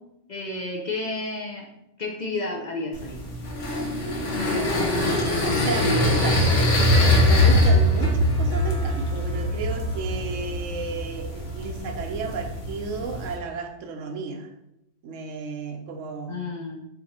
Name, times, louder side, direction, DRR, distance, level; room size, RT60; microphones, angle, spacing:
voice 1, 0.3-1.7 2.0-3.2 4.3-6.9 16.3-16.8, left 2 dB, 55° left, 0 dB, 0.5 m, -32 dB
sound 1, 2.9-13.4, left 1 dB, 70° left, 1.2 m, -23 dB
voice 2, 5.4-6.8 7.2-14.5 15.0-16.5, right 4 dB, 80° right, 4 dB, 1.0 m, -33 dB
4.3 x 2.6 x 4.1 m, 0.87 s
omnidirectional pair, 1.3 m